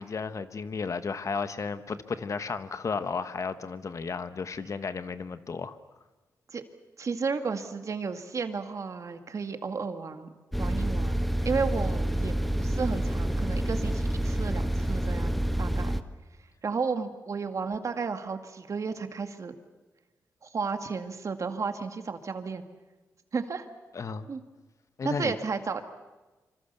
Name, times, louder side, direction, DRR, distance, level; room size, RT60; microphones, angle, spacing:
voice 1, 0.0-5.8 23.9-24.3 25.0-25.3, left 5 dB, 50° left, 1.4 m, -33 dB
voice 2, 7.0-10.3 10.6-16.0 16.6-19.6 20.4-22.6 23.3-23.7 24.3-24.4 25.0-25.8, right 5 dB, 50° right, 2.1 m, -33 dB
sound 1, 10.5-16.0, right 1 dB, ahead, 1.3 m, -28 dB
26.0 x 25.5 x 6.9 m
cardioid pair, 80°, 7 cm